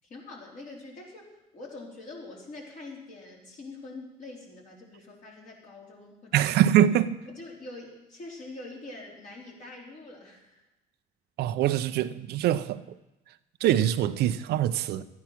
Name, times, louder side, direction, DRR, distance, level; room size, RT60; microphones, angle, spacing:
voice 1, 0.0-6.5 7.3-10.6, left 2 dB, 50° left, 4.5 m, -44 dB
voice 2, 6.3-7.2 11.4-12.8 13.6-15.0, right 11 dB, 75° right, 0.7 m, -23 dB
14.0 x 9.5 x 6.0 m
cardioid pair, 110°, 17 cm